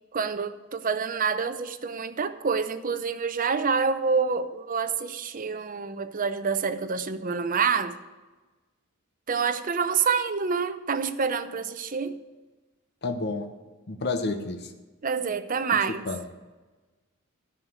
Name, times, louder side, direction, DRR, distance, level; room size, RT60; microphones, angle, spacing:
voice 1, 0.1-8.0 9.3-12.2 15.0-16.0, right 5 dB, 40° right, 11 dB, 0.7 m, -27 dB
voice 2, 13.0-13.5 13.9-14.7 16.1-16.2, left 3 dB, 50° left, 6 dB, 0.9 m, -29 dB
11.0 x 6.5 x 7.9 m, 1.2 s
head